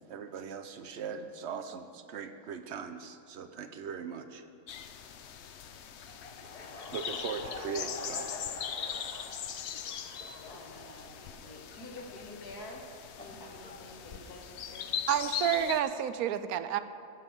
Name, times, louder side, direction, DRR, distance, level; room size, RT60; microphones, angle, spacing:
voice 1, 0.0-4.4 6.9-8.3, right 6 dB, 55° right, 9 dB, 0.9 m, -40 dB
sound 1, 4.7-15.8, left 8 dB, 60° left, 0.8 m, -40 dB
Laughter, 6.0-14.5, left 3 dB, 30° left, 1.0 m, -47 dB
voice 2, 10.4-12.8 13.1-14.9, left 1 dB, 85° left, -1 dB, 2.3 m, -48 dB
voice 3, 15.1-16.8, right 10 dB, 80° right, 12 dB, 1.1 m, -29 dB
15.0 x 5.7 x 7.1 m, 2.3 s
omnidirectional pair, 1.6 m